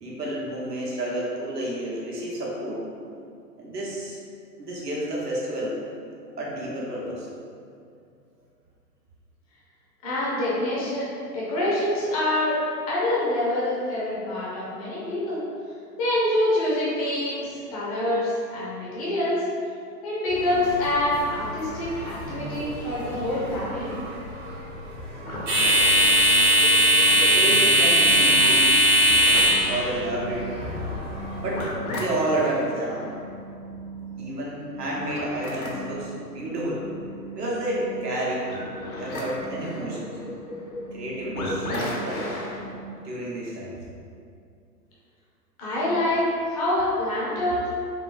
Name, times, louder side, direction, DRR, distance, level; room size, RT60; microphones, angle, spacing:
voice 1, 0.0-2.8 3.6-4.2 4.6-5.8 6.4-7.3 27.1-28.7 29.7-30.5 31.4-31.7 32.0-33.1 34.2-36.8 37.3-38.5 39.0-40.1 40.9-42.5 43.0-43.8, right 1 dB, 70° right, -5 dB, 0.9 m, -30 dB
voice 2, 10.0-11.0 11.3-12.5 12.9-15.4 16.0-19.5 20.0-24.0 45.6-47.7, left 1 dB, 25° left, -7 dB, 0.5 m, -26 dB
sound 1, 20.3-31.6, right 1 dB, 45° right, 1.0 m, -21 dB
sound 2, 25.2-42.9, equal, 60° left, 0.7 m, -36 dB
3.6 x 2.3 x 2.5 m, 2.4 s
figure-of-eight pair, 110°, 49 cm